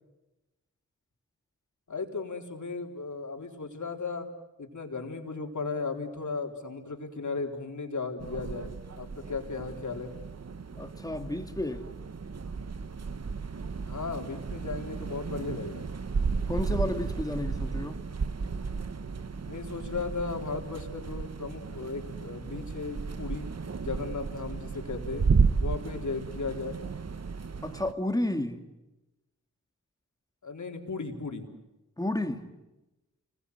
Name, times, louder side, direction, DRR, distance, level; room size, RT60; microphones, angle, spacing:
voice 1, 1.9-4.3 4.6-8.7 9.0-10.1 13.8-15.8 19.5-23.5 23.8-25.2 25.6-26.8 30.4-31.5, left 4 dB, 65° left, 4.1 m, -36 dB
sound 1, 8.2-27.9, right 5 dB, 50° right, 1.1 m, -33 dB
voice 2, 10.8-11.9 16.5-18.0 27.6-28.6 32.0-32.4, left 1 dB, 10° left, 2.6 m, -31 dB
29.5 x 21.5 x 8.3 m
wide cardioid pair, 75°, 32 cm